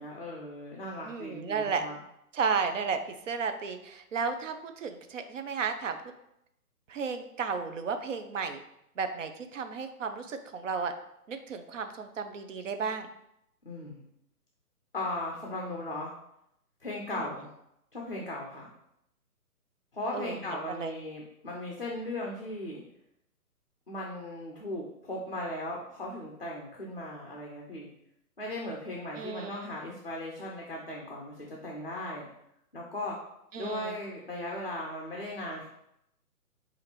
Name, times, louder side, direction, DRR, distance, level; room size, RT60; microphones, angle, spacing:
voice 1, 0.0-1.9 13.7-14.0 14.9-16.1 16.8-17.5 17.9-18.7 19.9-22.8 23.9-27.9 28.4-32.3 32.7-33.2 33.6-35.7, left 1 dB, 40° left, -1 dB, 0.4 m, -37 dB
voice 2, 1.0-1.8 2.3-6.0 6.9-8.6 9.0-10.9 11.3-13.1 17.1-17.3 20.1-20.9 29.2-29.7 33.5-33.9, right 5 dB, 55° right, 7 dB, 0.5 m, -33 dB
4.9 x 2.5 x 2.9 m, 0.79 s
hypercardioid pair, 170°, 46 cm